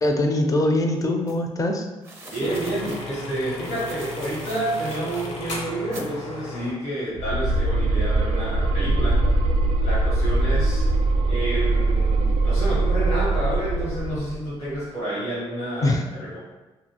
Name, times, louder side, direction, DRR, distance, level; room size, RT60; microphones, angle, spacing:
voice 1, 0.0-1.9 15.8-16.0, left 1 dB, 30° left, 3 dB, 0.5 m, -22 dB
sound 1, 1.3-1.4 2.0-3.0 3.6-5.3 5.9-6.1, right 1 dB, 25° right, 0.6 m, -42 dB
voice 2, 2.3-9.2 9.8-10.9 11.3-16.4, right 1 dB, 90° left, -8 dB, 1.4 m, -29 dB
sound 2, 2.4-6.7, left 3 dB, 70° left, 0.7 m, -35 dB
sound 3, 7.2-14.4, right 2 dB, 75° right, 0.4 m, -22 dB
2.6 x 2.6 x 2.8 m, 1.1 s
supercardioid pair, 70°, 11 cm